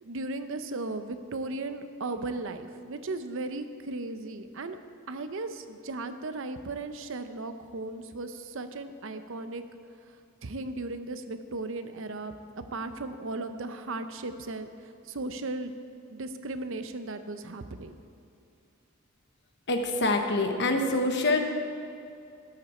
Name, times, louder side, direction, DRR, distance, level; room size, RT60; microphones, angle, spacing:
voice 1, 0.0-4.8 5.1-9.6 10.4-12.3 12.7-14.7 15.1-15.7 16.1-18.0, right 2 dB, 60° right, 9 dB, 0.6 m, -36 dB
voice 2, 19.7-21.5, left 2 dB, 50° left, 4 dB, 1.1 m, -25 dB
13.0 x 10.0 x 4.3 m, 2.5 s
head